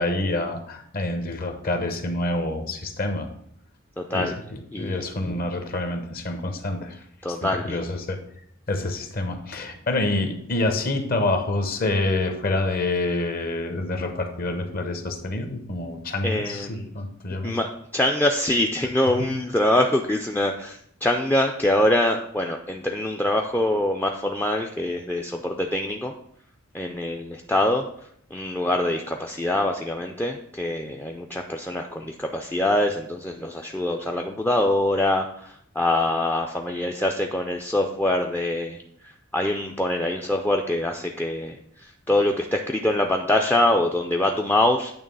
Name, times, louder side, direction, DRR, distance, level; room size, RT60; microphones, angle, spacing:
voice 1, 0.0-3.3 4.1-7.0 7.3-8.2 8.7-17.6 19.2-19.3, left 2 dB, 45° left, 6 dB, 0.9 m, -27 dB
voice 2, 4.0-4.3 4.7-5.0 7.2-7.8 16.2-16.9 17.4-17.7 17.9-26.1 26.7-27.8 28.3-38.8 39.3-44.9, left 1 dB, 10° left, 1 dB, 0.4 m, -24 dB
8.9 x 3.2 x 5.4 m, 0.69 s
head